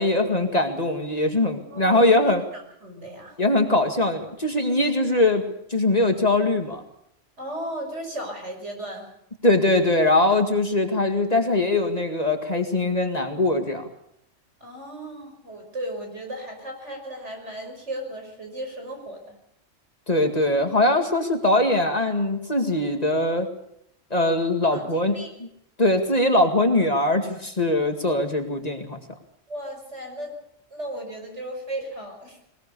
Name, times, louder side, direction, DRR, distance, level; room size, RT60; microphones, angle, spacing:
voice 1, 0.0-2.4 3.4-5.4 5.7-6.8 9.4-13.9 20.1-23.5 24.1-25.5 25.8-29.0, left 2 dB, 35° left, 5 dB, 2.1 m, -21 dB
voice 2, 1.7-3.4 7.4-9.1 14.6-19.3 24.7-24.9 25.1-25.3 29.5-30.4 30.7-32.4, right 1 dB, 70° right, 3 dB, 6.0 m, -35 dB
21.0 x 20.0 x 6.9 m, 0.74 s
omnidirectional pair, 1.3 m